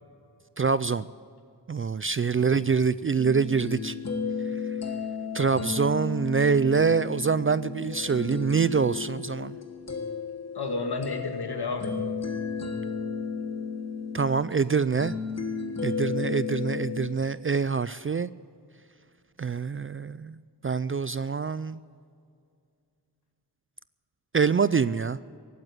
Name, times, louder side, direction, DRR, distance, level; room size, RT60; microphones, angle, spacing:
voice 1, 0.6-1.1 1.7-3.9 5.3-9.6 14.1-15.1 15.8-18.3 19.4-20.4 20.6-21.8 24.3-25.2, right 5 dB, 30° right, 16 dB, 0.4 m, -25 dB
sound 1, 3.2-17.1, left 5 dB, 40° left, 1.5 m, -33 dB
voice 2, 10.6-12.1, left 3 dB, 65° left, 4 dB, 2.1 m, -32 dB
15.5 x 9.4 x 9.8 m, 2.3 s
wide cardioid pair, 60°, 42 cm